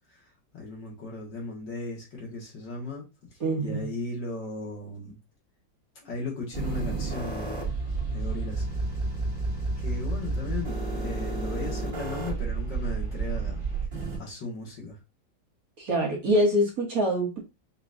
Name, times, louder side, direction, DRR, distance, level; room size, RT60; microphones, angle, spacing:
voice 1, 0.1-5.2 6.0-7.8 8.1-8.6 9.8-13.6 13.9-15.0, left 3 dB, 60° left, 2.3 m, -37 dB
voice 2, 3.4-3.9 15.8-17.4, equal, 50° right, 1.5 m, -25 dB
sound 1, 6.5-14.2, right 3 dB, 25° right, 2.0 m, -31 dB
5.9 x 3.0 x 2.5 m
omnidirectional pair, 2.1 m